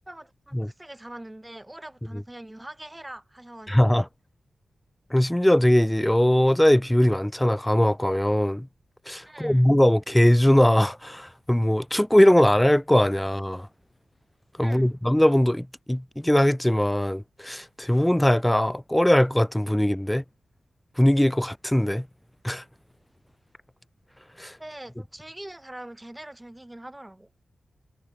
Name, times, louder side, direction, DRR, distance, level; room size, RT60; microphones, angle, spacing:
voice 1, 0.1-4.0 9.3-9.6 14.6-14.9 24.6-27.3, right 1 dB, 10° right, 5.7 m, -43 dB
voice 2, 3.7-4.1 5.1-8.7 9.1-13.7 14.6-20.2 21.0-22.1 22.4-22.6 24.4-24.6, left 1 dB, 5° left, 0.3 m, -21 dB
wide cardioid pair, 115°, 0 cm